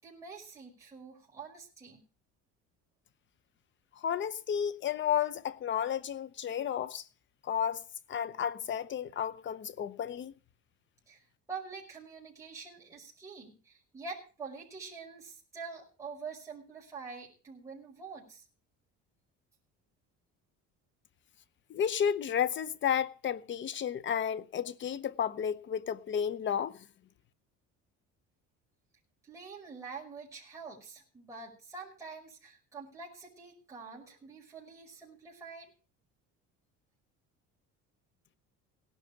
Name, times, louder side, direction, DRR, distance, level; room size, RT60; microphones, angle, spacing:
voice 1, 0.0-2.0 11.1-18.4 29.2-35.7, right 4 dB, 10° right, 5.4 m, -46 dB
voice 2, 4.0-7.1 7.4-7.8 8.1-10.3 21.7-26.8, left 8 dB, 40° left, 0.8 m, -32 dB
18.0 x 11.0 x 4.7 m
cardioid pair, 130°, 30 cm